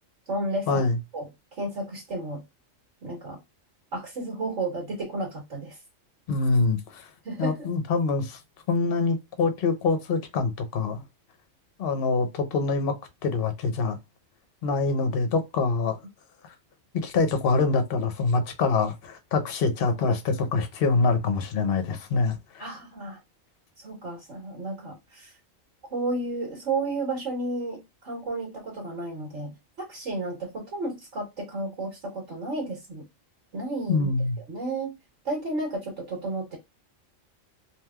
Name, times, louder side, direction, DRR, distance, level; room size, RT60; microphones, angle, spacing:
voice 1, 0.3-0.8 1.1-1.3 1.6-2.4 3.0-3.4 3.9-5.8 7.2-7.7 22.6-23.2 23.8-25.3 25.9-33.0 33.5-34.1 34.5-34.9 35.2-36.6, right 2 dB, 60° right, 1.6 m, -32 dB
voice 2, 6.3-7.1 7.4-8.4 8.7-11.0 11.8-14.0 14.6-16.0 16.4-16.5 17.0-22.6 33.9-34.4, left 4 dB, 55° left, 0.8 m, -25 dB
3.2 x 2.8 x 2.2 m
omnidirectional pair, 1.4 m